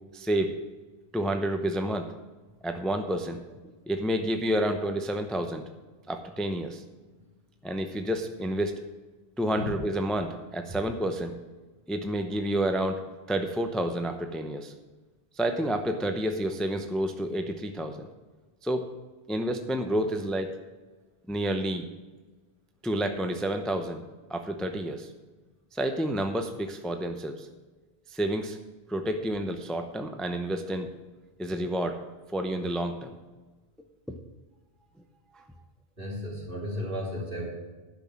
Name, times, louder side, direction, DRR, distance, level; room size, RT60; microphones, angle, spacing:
voice 1, 0.1-0.6 1.1-2.1 2.6-3.4 3.9-5.6 6.1-6.8 7.6-8.8 9.4-11.4 11.9-13.0 13.3-14.7 15.4-18.1 18.6-18.9 19.3-20.6 21.3-21.9 22.8-24.0 24.3-25.1 25.7-27.5 28.1-28.6 28.9-30.9 31.4-32.0 32.3-33.1 35.3-35.4, right 1 dB, ahead, 6 dB, 0.6 m, -29 dB
voice 2, 36.0-37.5, equal, 60° right, -4 dB, 3.7 m, -34 dB
10.5 x 6.1 x 7.5 m, 1.3 s
omnidirectional pair, 1.1 m